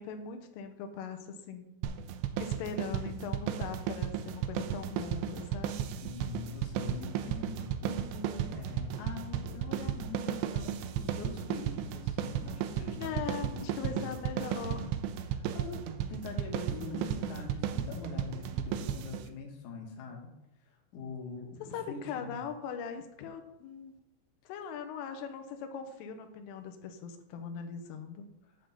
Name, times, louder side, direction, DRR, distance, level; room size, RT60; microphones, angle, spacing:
voice 1, 0.0-1.7 2.4-5.8 7.8-8.6 13.0-14.9 16.7-17.3 21.7-23.9 24.5-28.3, left 6 dB, 85° left, 6 dB, 3.5 m, -40 dB
sound 1, 1.8-19.3, right 9 dB, 85° right, 2.5 m, -35 dB
voice 2, 6.0-7.8 8.5-14.9 15.3-20.3 20.9-22.4 24.6-24.7 25.1-25.2, left 4 dB, 65° left, 1 dB, 1.9 m, -44 dB
11.5 x 3.9 x 7.0 m, 0.91 s
omnidirectional pair, 5.6 m